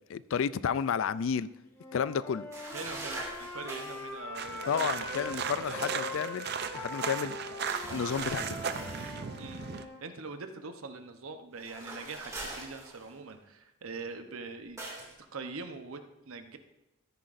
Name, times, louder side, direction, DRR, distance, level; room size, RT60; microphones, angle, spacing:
voice 1, 0.1-1.5 1.9-2.5 4.7-6.5 6.7-7.4 7.9-8.6, left 7 dB, 65° left, 17 dB, 0.3 m, -31 dB
Wind instrument woodwind instrument, 1.8-5.4 5.7-10.0, left 2 dB, 15° left, 1.4 m, -42 dB
sound 1, 2.5-4.1 7.7-9.2 11.6-13.3 14.8-15.1, right 2 dB, 15° right, 2.2 m, -42 dB
voice 2, 2.7-6.3 9.4-14.8 15.3-16.6, right 4 dB, 80° right, 7 dB, 0.9 m, -43 dB
sound 2, 4.3-9.8, right 6 dB, 50° right, 0.5 m, -37 dB
13.5 x 10.5 x 2.6 m, 1.0 s
head